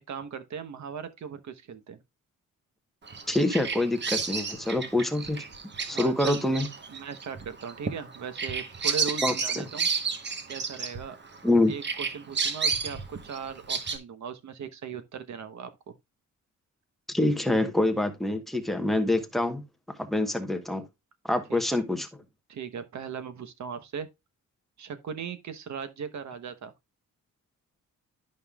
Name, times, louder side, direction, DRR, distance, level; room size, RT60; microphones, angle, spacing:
voice 1, 0.1-2.0 5.9-6.4 6.9-9.9 10.5-11.2 11.7-15.9 21.5-21.6 22.5-24.1 24.8-26.7, right 6 dB, 60° right, 1.0 m, -38 dB
Bird vocalization bird call bird song, 3.1-11.5 11.8-14.0, right 5 dB, 35° right, 1.1 m, -31 dB
voice 2, 3.3-5.4 5.9-6.7 9.2-9.6 11.4-11.7 17.1-19.6 20.0-20.8 21.3-22.1, left 1 dB, ahead, 1.0 m, -26 dB
11.0 x 5.4 x 2.3 m
wide cardioid pair, 160°, 32 cm